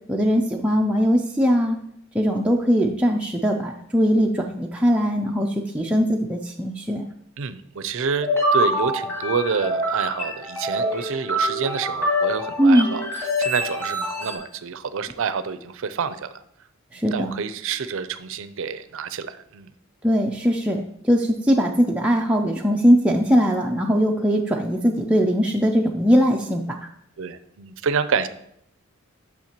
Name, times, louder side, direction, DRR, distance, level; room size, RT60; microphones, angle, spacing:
voice 1, 0.1-1.8 2.1-7.1 12.6-12.9 16.9-17.4 20.0-26.9, equal, 5° right, -1 dB, 0.4 m, -20 dB
voice 2, 7.4-16.4 17.1-19.7 27.2-28.3, right 5 dB, 65° right, 13 dB, 0.5 m, -28 dB
sound 1, 8.1-14.4, equal, 10° left, 2.1 m, -25 dB
8.7 x 6.2 x 2.9 m, 0.72 s
head